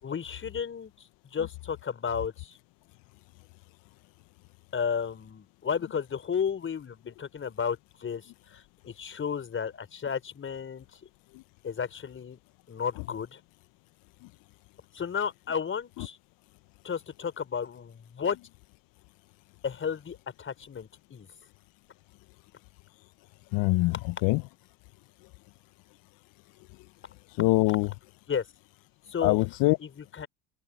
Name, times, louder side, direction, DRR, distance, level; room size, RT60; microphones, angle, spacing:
voice 1, 0.0-0.9 1.3-2.6 4.7-10.9 11.6-12.4 12.7-13.4 14.9-16.2 16.8-18.4 19.6-21.3 28.3-28.4 29.1-29.4 29.8-30.3, left 7 dB, 35° left, 5.2 m, -33 dB
voice 2, 23.5-24.4 27.4-27.9 29.2-29.8, left 21 dB, 65° left, 1.2 m, -24 dB
open air
hypercardioid pair, 75°, 36 cm